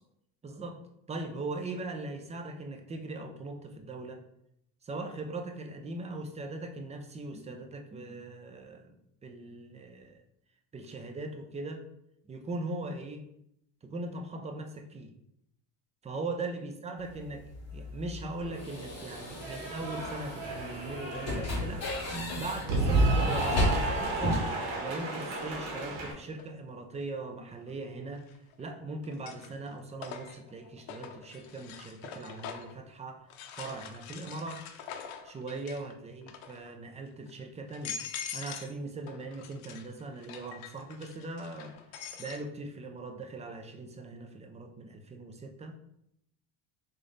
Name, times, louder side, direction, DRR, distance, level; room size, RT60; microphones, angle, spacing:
voice 1, 0.4-0.8 1.1-4.2 4.8-9.0 9.2-10.2 10.7-11.9 12.2-13.3 13.8-15.1 16.0-21.9 22.4-28.3 28.6-33.3 33.5-34.6 35.2-38.0 38.3-45.7, right 2 dB, 15° right, 4 dB, 0.3 m, -40 dB
sound 1, 17.0-24.4, left 1 dB, 30° left, 1.7 m, -35 dB
Cheering / Applause, 18.4-26.1, right 2 dB, 70° right, 1.4 m, -32 dB
sound 2, 26.4-26.5 28.2-28.6 29.0-32.8 33.3-35.9 36.2-36.7 37.3-37.4 37.7-38.8 39.1-42.4, left 7 dB, 80° left, 0.7 m, -44 dB
3.8 x 3.3 x 3.8 m, 0.76 s
cardioid pair, 130°, 47 cm